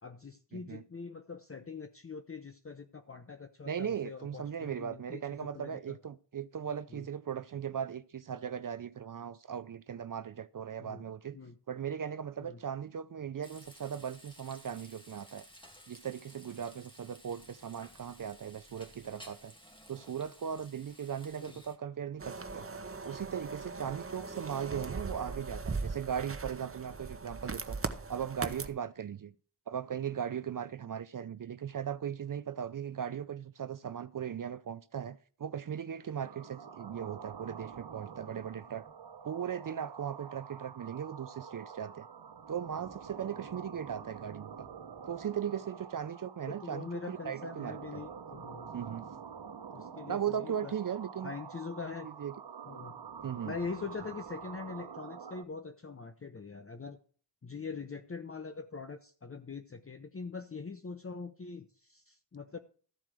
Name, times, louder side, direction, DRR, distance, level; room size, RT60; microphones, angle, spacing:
voice 1, 0.0-6.0 6.9-7.0 10.8-11.0 11.3-11.5 12.4-12.6 21.4-21.5 46.5-48.7 49.7-50.7 51.2-52.1 52.7-53.0 53.4-57.0 57.4-62.6, left 4 dB, 35° left, 0.7 m, -43 dB
voice 2, 0.5-0.8 3.7-11.4 11.7-15.5 15.9-19.5 19.9-22.7 23.0-27.8 28.1-29.3 29.7-38.9 39.2-42.1 42.5-44.7 45.1-48.0 48.7-49.0 50.1-51.3 52.2-52.3 53.2-53.5, right 8 dB, 55° right, 0.5 m, -38 dB
Frying (food), 13.4-21.8, equal, 10° left, 2.0 m, -56 dB
sound 1, 22.2-28.7, right 4 dB, 35° right, 0.9 m, -39 dB
sound 2, 36.2-55.4, right 6 dB, 70° right, 1.1 m, -47 dB
14.0 x 4.6 x 7.5 m
wide cardioid pair, 70°, 41 cm